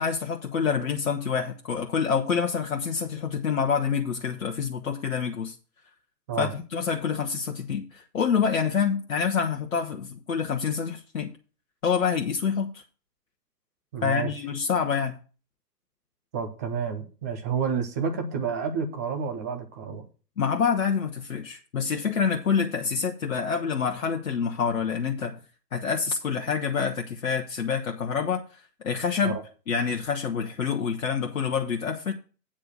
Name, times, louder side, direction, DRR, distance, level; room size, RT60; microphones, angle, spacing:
voice 1, 0.0-5.6 6.4-11.3 11.8-12.8 14.0-15.2 20.4-25.4 25.7-29.4 29.7-32.1, left 6 dB, 60° left, 1.1 m, -27 dB
voice 2, 13.9-14.3 16.3-20.0 29.2-29.4, right 6 dB, 10° right, 0.5 m, -30 dB
8.6 x 4.7 x 7.5 m
figure-of-eight pair, 120°, 48 cm